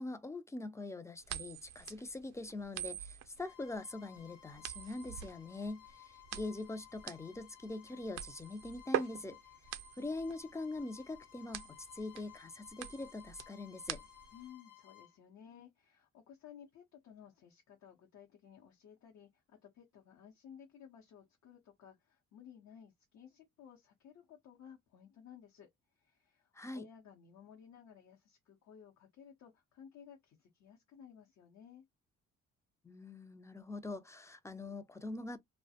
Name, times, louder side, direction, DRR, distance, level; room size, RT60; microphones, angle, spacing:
voice 1, 0.0-9.4 10.0-14.0 26.5-26.9 32.8-35.4, left 2 dB, 10° left, 0.3 m, -43 dB
sound 1, 1.2-14.4, right 11 dB, 60° right, 0.5 m, -43 dB
Bowed string instrument, 3.4-15.2, left 12 dB, 90° left, 1.0 m, -58 dB
voice 2, 14.3-31.9, left 8 dB, 70° left, 0.7 m, -57 dB
2.4 x 2.1 x 2.7 m
cardioid pair, 90°, 30 cm